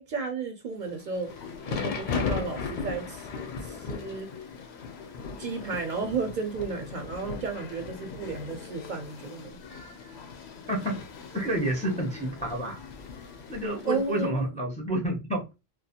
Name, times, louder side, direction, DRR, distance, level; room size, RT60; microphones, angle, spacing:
voice 1, 0.0-3.3 3.6-4.3 5.4-9.5 13.8-14.4, right 4 dB, 55° right, 0.6 m, -33 dB
Thunder / Rain, 0.9-14.0, left 5 dB, 60° left, 0.6 m, -38 dB
sound 1, 1.3-14.3, left 6 dB, 85° left, 0.9 m, -46 dB
voice 2, 10.7-11.0 11.3-12.8 13.5-15.4, right 1 dB, 10° left, 0.4 m, -29 dB
2.3 x 2.2 x 2.7 m
omnidirectional pair, 1.1 m